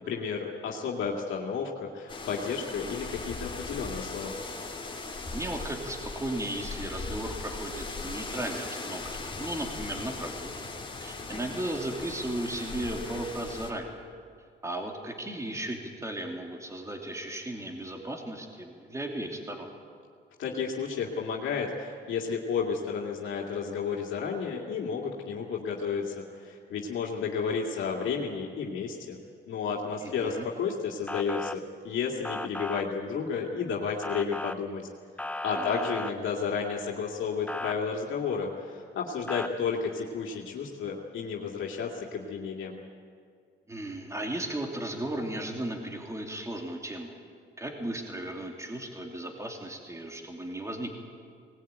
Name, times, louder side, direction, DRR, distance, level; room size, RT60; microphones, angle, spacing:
voice 1, 0.0-4.4 20.4-29.2 29.5-34.9 35.4-42.8, left 6 dB, 80° left, -1 dB, 2.3 m, -32 dB
sound 1, 2.1-13.7, left 3 dB, 25° left, 3.1 m, -39 dB
voice 2, 5.3-9.1 9.4-10.5 11.0-14.0 14.6-19.7 30.0-30.4 35.5-35.9 43.7-47.2 47.6-50.9, right 1 dB, 15° right, 2 dB, 2.9 m, -35 dB
Motor vehicle (road) / Siren, 31.1-31.6 32.2-32.8 34.0-34.6 35.2-36.1 37.5-37.7 39.3-39.5, left 2 dB, 5° left, 0.6 m, -35 dB
19.5 x 19.5 x 9.2 m, 2.1 s
cardioid pair, 95°, 20 cm